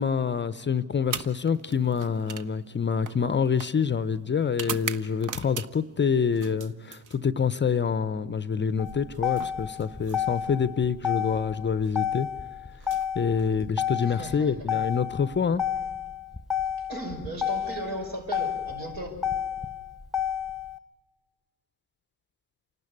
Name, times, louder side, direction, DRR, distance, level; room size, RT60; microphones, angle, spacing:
voice 1, 0.0-12.3 13.1-15.6, left 6 dB, 25° left, 15 dB, 0.6 m, -26 dB
sound 1, 1.0-6.0 6.3-7.6 8.8-10.6 11.7-11.9 12.7-13.9, right 6 dB, 45° right, 0.9 m, -40 dB
Motor vehicle (road), 8.8-20.8, left 9 dB, ahead, 1.0 m, -31 dB
voice 2, 14.0-14.5 16.9-19.2, right 1 dB, 75° right, 1 dB, 5.6 m, -36 dB
27.0 x 12.0 x 9.7 m, 1.4 s
supercardioid pair, 65°, 43 cm